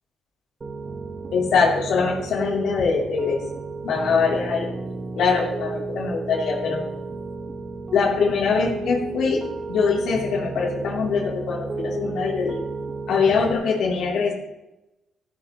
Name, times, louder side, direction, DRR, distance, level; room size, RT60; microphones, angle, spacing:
Piano, 0.6-13.5, right 3 dB, 35° right, 1.1 m, -33 dB
voice 1, 1.3-3.4 3.8-4.7 5.2-6.8 7.9-12.6 13.1-14.3, left 5 dB, 75° left, -4 dB, 3.7 m, -23 dB
15.5 x 11.0 x 3.3 m, 0.98 s
cardioid pair, 90°, 0 cm